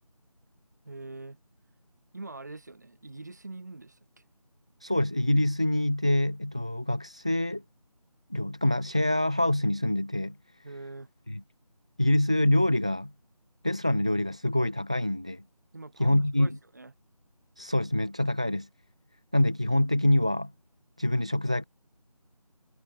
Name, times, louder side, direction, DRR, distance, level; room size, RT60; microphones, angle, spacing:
voice 1, 0.8-1.4 2.1-4.2 10.6-11.1 15.7-16.9, right 2 dB, 25° right, 5.5 m, -43 dB
voice 2, 4.8-7.6 8.3-10.4 11.3-11.4 12.0-13.1 13.6-15.4 16.0-16.5 17.6-18.7 19.3-20.5 21.0-21.6, left 1 dB, 10° right, 1.1 m, -25 dB
figure-of-eight pair, 170°, 20 cm